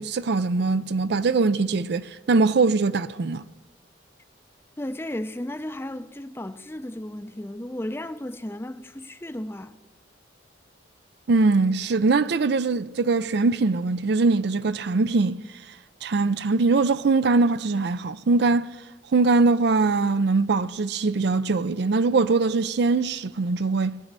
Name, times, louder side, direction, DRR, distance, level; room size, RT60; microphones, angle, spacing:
voice 1, 0.0-3.4 11.3-15.4 16.0-18.7 19.1-24.0, right 3 dB, 55° right, 0.5 m, -22 dB
voice 2, 4.8-9.8, left 1 dB, 10° left, 0.5 m, -34 dB
21.0 x 8.4 x 6.7 m
head